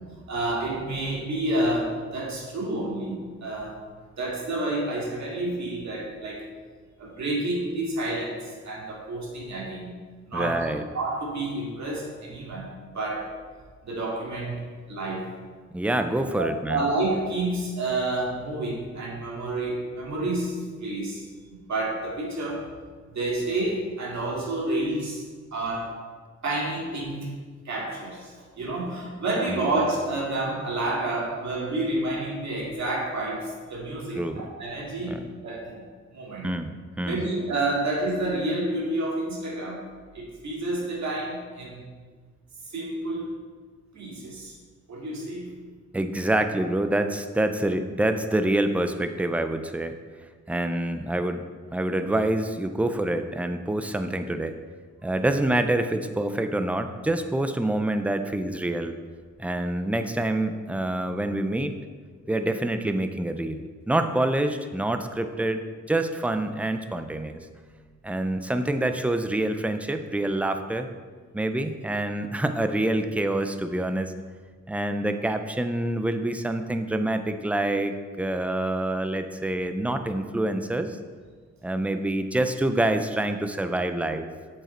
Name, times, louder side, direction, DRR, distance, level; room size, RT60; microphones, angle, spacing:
voice 1, 0.3-3.8 4.2-6.5 7.0-9.9 10.3-10.6 10.9-13.3 13.8-15.3 16.4-21.2 21.7-22.6 23.1-25.2 25.5-26.0 26.4-27.3 27.6-35.2 35.4-35.8 36.1-36.5 37.0-39.8 40.1-41.9 42.6-43.4 43.9-44.6 44.9-45.5, right 2 dB, 65° right, -3 dB, 2.2 m, -29 dB
voice 2, 10.3-10.8 15.7-16.9 29.5-29.6 34.2-34.5 35.1-35.3 36.4-37.3 45.9-50.0 50.5-51.4 51.7-54.6 55.0-59.0 59.4-61.8 62.3-67.5 68.0-70.9 71.3-74.1 74.7-81.0 81.6-84.3, right 1 dB, 5° right, 8 dB, 0.4 m, -26 dB
8.0 x 7.4 x 4.4 m, 1.5 s
wide cardioid pair, 170°, 30 cm